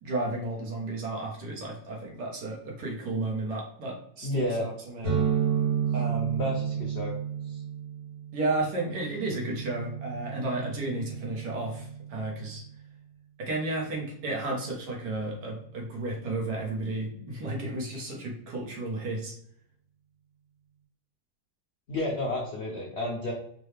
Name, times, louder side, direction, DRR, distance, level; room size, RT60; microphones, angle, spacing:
voice 1, 0.0-5.2 5.9-6.5 8.3-12.6 13.4-19.3, right 2 dB, 65° right, -1 dB, 1.6 m, -33 dB
voice 2, 4.2-4.7 6.4-7.1 7.5-7.6 21.9-23.3, left 1 dB, 85° left, -1 dB, 0.5 m, -31 dB
sound 1, 5.0-12.6, right 8 dB, 35° right, 1.4 m, -32 dB
4.6 x 2.3 x 3.3 m, 0.68 s
omnidirectional pair, 2.0 m